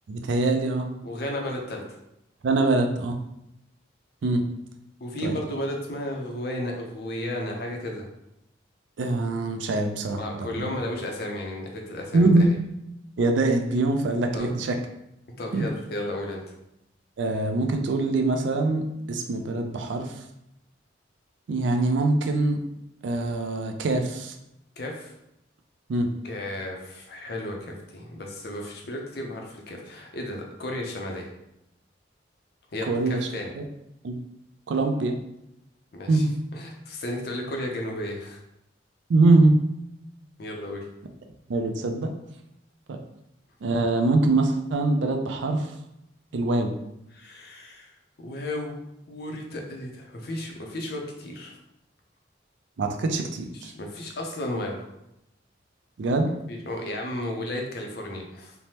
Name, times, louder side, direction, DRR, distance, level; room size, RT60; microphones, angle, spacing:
voice 1, 0.1-0.9 2.4-3.2 4.2-4.4 5.2-5.4 9.0-10.7 12.1-12.5 13.2-14.8 15.5-15.7 17.2-20.1 21.5-22.6 23.0-24.3 25.9-26.1 32.9-33.2 33.6-33.7 34.0-34.2 34.7-35.2 36.1-36.3 39.1-39.6 41.5-42.1 42.9-43.0 43.6-45.7 46.3-46.7 52.8-53.7 56.0-56.3, right 2 dB, 75° right, 5 dB, 0.4 m, -23 dB
voice 2, 1.0-1.8 5.0-8.1 10.2-12.3 14.3-14.5 15.4-16.4 24.8-25.1 26.2-31.3 32.7-33.5 35.9-36.3 36.5-38.4 40.4-40.8 47.1-48.8 49.1-51.5 53.5-54.9 56.5-58.5, left 1 dB, 55° left, 1 dB, 0.5 m, -33 dB
3.2 x 2.1 x 2.8 m, 0.84 s
head